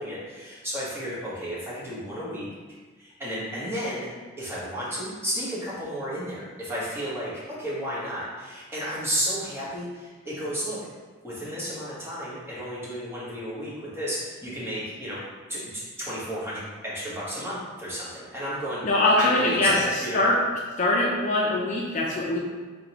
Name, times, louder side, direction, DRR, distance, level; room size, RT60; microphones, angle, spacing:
voice 1, 0.0-2.5 3.0-4.1 4.4-10.8 11.2-15.2 15.5-18.8 19.2-20.2, equal, 10° right, -9 dB, 1.3 m, -32 dB
voice 2, 18.8-20.4 20.8-22.4, left 2 dB, 40° left, -3 dB, 0.4 m, -22 dB
3.7 x 3.6 x 2.9 m, 1.4 s
head